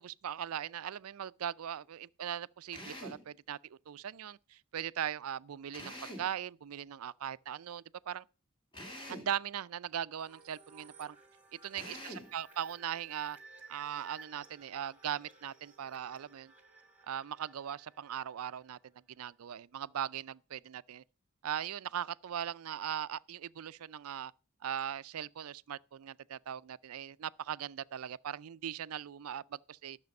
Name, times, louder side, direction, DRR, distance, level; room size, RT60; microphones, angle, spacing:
voice 1, 0.0-3.6 3.9-8.2 9.1-11.2 11.6-13.4 13.7-16.5 17.1-18.8 19.1-21.0 21.4-24.3 24.6-30.0, right 9 dB, 80° right, 0.4 m, -39 dB
Drill, 2.7-3.3 5.7-6.4 8.7-9.4 11.7-12.4, equal, 25° left, 2.5 m, -45 dB
sound 1, 10.2-18.8, right 3 dB, 5° right, 2.0 m, -57 dB
12.0 x 6.8 x 5.3 m
head